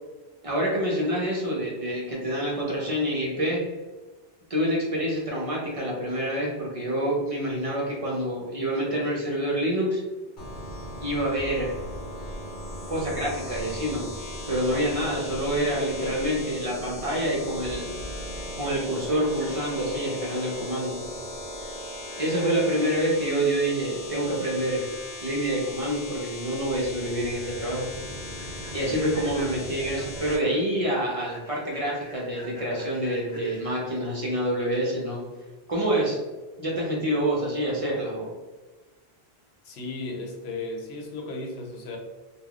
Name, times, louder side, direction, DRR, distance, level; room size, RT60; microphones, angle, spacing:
voice 1, 0.4-3.6 4.5-10.0 11.0-11.7 12.9-14.1 14.5-17.9 18.6-21.0 22.2-24.8 25.2-27.9 28.7-35.2 35.7-36.2 36.6-38.3, right 1 dB, 40° right, -4 dB, 0.6 m, -27 dB
sound 1, 10.4-30.4, left 1 dB, 55° left, 0.8 m, -37 dB
Human voice / Train, 27.8-35.5, left 1 dB, 30° left, 0.3 m, -49 dB
voice 2, 39.6-42.0, left 2 dB, 85° left, 1 dB, 0.9 m, -35 dB
3.3 x 2.3 x 2.3 m, 1.3 s
omnidirectional pair, 1.1 m